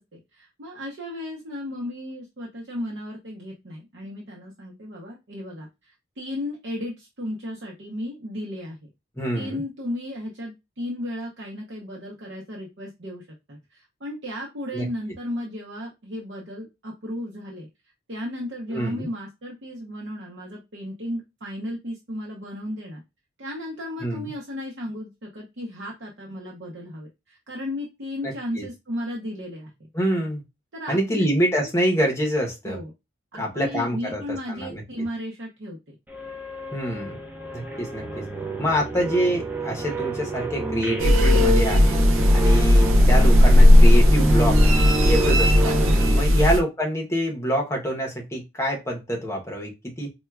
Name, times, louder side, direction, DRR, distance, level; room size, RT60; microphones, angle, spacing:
voice 1, 0.0-8.9 9.3-17.7 18.1-23.0 23.4-29.7 30.7-31.3 32.6-32.9 33.3-35.9 46.3-46.5, left 1 dB, 60° right, -3 dB, 0.7 m, -35 dB
voice 2, 9.2-9.6 14.7-14.9 18.7-19.1 24.0-24.3 28.2-28.7 29.9-30.4 30.9-32.8 33.4-34.2 34.5-34.8 36.7-37.2 37.5-38.2 38.6-42.0 42.3-44.6 45.0-45.8 46.2-50.1, equal, 15° left, 0 dB, 0.8 m, -26 dB
sound 1, 36.1-46.2, right 1 dB, 10° right, 0.4 m, -27 dB
sound 2, 41.0-46.6, left 1 dB, 90° right, 0.4 m, -16 dB
4.4 x 2.2 x 2.3 m, 0.22 s
head